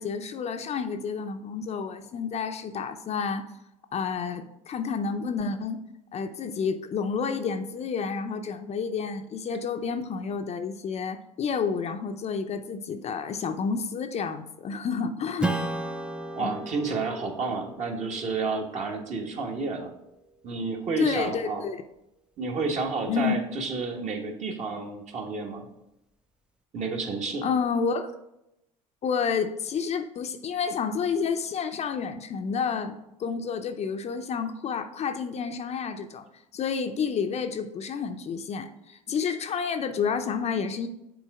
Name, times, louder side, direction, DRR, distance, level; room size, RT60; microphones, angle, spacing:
voice 1, 0.0-3.4 3.9-5.8 6.1-15.5 16.4-16.6 21.0-21.8 23.1-23.3 27.4-28.1 29.0-36.3 36.5-40.9, left 6 dB, 40° left, 7 dB, 0.6 m, -30 dB
Strum, 15.4-20.3, right 2 dB, 5° right, 0.5 m, -35 dB
voice 2, 16.3-19.9 20.4-21.6 22.4-25.7 26.7-27.4, right 4 dB, 45° right, 2 dB, 1.4 m, -30 dB
7.0 x 3.9 x 4.8 m, 0.87 s
hypercardioid pair, 75°, 17 cm